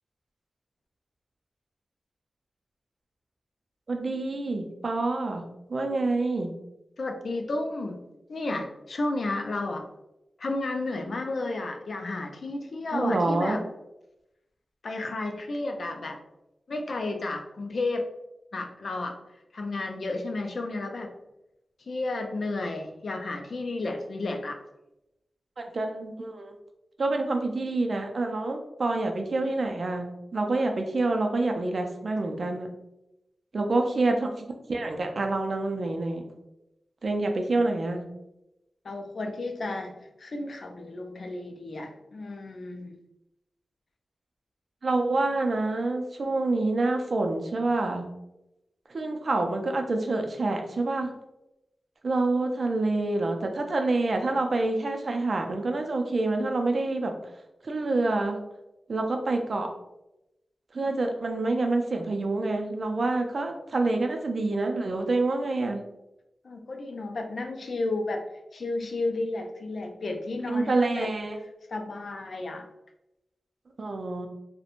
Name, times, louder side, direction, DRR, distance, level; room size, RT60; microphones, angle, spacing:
voice 1, 3.9-5.4 5.7-6.5 12.9-13.6 25.6-26.5 27.0-32.7 33.5-36.2 37.0-38.0 44.8-48.1 48.9-51.1 52.0-57.1 57.6-58.4 58.9-59.7 60.7-65.8 70.5-71.4 73.8-74.3, right 2 dB, 55° right, 4 dB, 0.4 m, -27 dB
voice 2, 7.0-8.0 8.3-9.9 10.4-13.7 14.8-16.2 16.7-18.1 18.5-19.2 19.5-21.2 21.9-24.6 33.7-34.0 38.8-43.0 66.4-68.2 68.5-71.1 71.7-72.7, left 2 dB, 70° left, 4 dB, 0.4 m, -32 dB
2.4 x 2.1 x 2.9 m, 0.90 s
wide cardioid pair, 95°, 0 cm